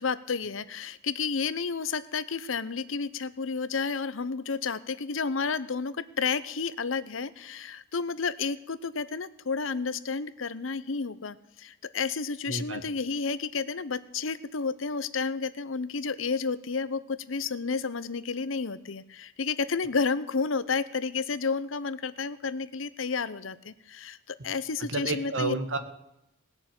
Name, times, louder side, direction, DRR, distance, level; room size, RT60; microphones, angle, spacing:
voice 1, 0.0-25.5, left 5 dB, 85° left, 15 dB, 0.8 m, -31 dB
voice 2, 12.5-12.8 24.9-25.8, right 3 dB, 80° right, 9 dB, 1.6 m, -30 dB
19.0 x 6.9 x 8.7 m, 0.87 s
head